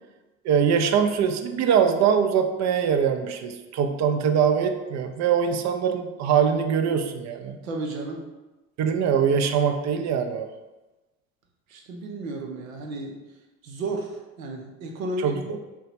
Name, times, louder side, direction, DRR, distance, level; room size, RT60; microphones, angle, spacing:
voice 1, 0.4-7.6 8.8-10.5 15.2-15.6, right 7 dB, 45° right, 6 dB, 0.5 m, -23 dB
voice 2, 7.6-8.3 11.7-13.2 13.6-15.6, right 2 dB, 85° right, 2 dB, 0.6 m, -33 dB
2.8 x 2.2 x 4.1 m, 1.1 s
hypercardioid pair, 60°, 41 cm